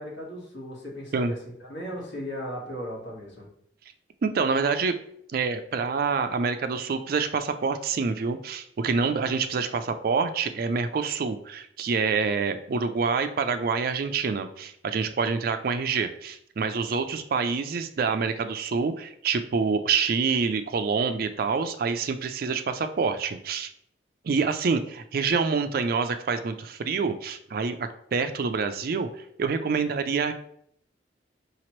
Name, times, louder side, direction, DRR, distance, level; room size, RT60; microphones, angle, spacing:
voice 1, 0.0-3.5, equal, 85° left, -3 dB, 1.5 m, -37 dB
voice 2, 4.2-4.9 5.3-23.7 24.2-29.1 29.4-30.3, right 5 dB, 55° right, 8 dB, 0.4 m, -26 dB
5.0 x 2.9 x 3.0 m, 0.69 s
head